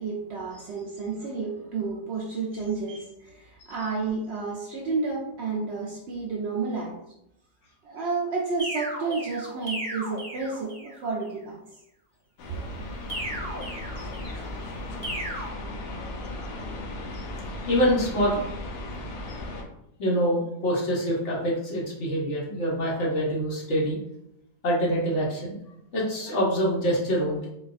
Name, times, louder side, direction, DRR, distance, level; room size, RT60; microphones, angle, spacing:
voice 1, 0.0-7.0 7.8-11.6, right 4 dB, 80° right, -3 dB, 0.6 m, -31 dB
sound 1, 8.6-11.0 13.1-14.5 15.0-15.5, right 1 dB, 15° left, 0.5 m, -35 dB
sound 2, 12.4-19.6, left 1 dB, 85° left, 1.2 m, -36 dB
voice 2, 17.7-18.4 20.0-24.0 24.6-25.6 25.9-27.4, equal, 55° left, -4 dB, 1.0 m, -25 dB
4.0 x 2.3 x 2.4 m, 0.80 s
omnidirectional pair, 1.7 m